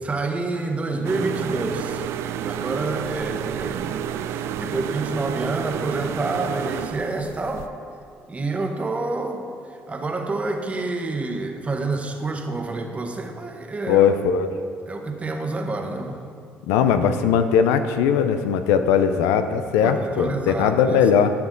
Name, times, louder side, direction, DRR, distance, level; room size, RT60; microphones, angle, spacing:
voice 1, 0.0-2.1 2.5-7.7 8.3-14.1 14.9-16.2 19.8-21.0, right 2 dB, 30° right, 3 dB, 1.2 m, -28 dB
sound 1, 1.0-7.7, right 10 dB, 70° right, 0.3 m, -30 dB
voice 2, 13.9-14.5 16.7-21.3, left 7 dB, 85° left, 9 dB, 0.5 m, -19 dB
12.5 x 6.0 x 3.9 m, 2.3 s
supercardioid pair, 75°, 5 cm